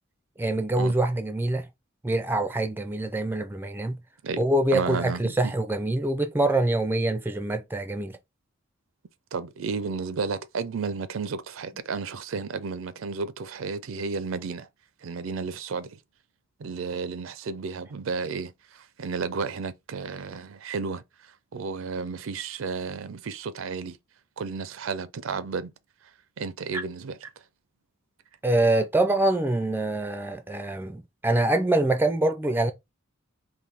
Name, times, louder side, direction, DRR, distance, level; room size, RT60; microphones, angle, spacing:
voice 1, 0.4-1.7 2.0-4.0 4.4-8.2 26.7-26.8 28.4-32.7, right 2 dB, 10° right, 0.4 m, -25 dB
voice 2, 4.7-5.5 9.3-14.7 15.0-16.0 16.6-24.0 24.4-25.7 26.4-27.3, right 4 dB, 70° right, 0.5 m, -32 dB
3.9 x 2.6 x 3.4 m
head